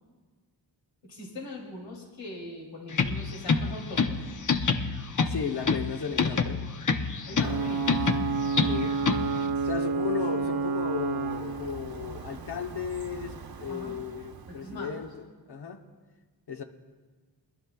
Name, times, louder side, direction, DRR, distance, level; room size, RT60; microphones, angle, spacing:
voice 1, 1.0-4.4 7.3-8.1 13.7-13.9 14.5-15.1, left 2 dB, 80° left, -2 dB, 3.3 m, -41 dB
sound 1, 2.9-9.5, left 5 dB, 45° left, 0.8 m, -28 dB
voice 2, 5.3-6.6 8.7-9.0 9.6-15.1 15.5-15.8 16.5-16.6, left 7 dB, 60° left, 4 dB, 1.0 m, -35 dB
Ocean / Boat Water vehicle / Alarm, 7.4-14.9, right 4 dB, 55° right, 0.9 m, -31 dB
24.5 x 12.0 x 2.4 m, 1.4 s
wide cardioid pair, 105°, 44 cm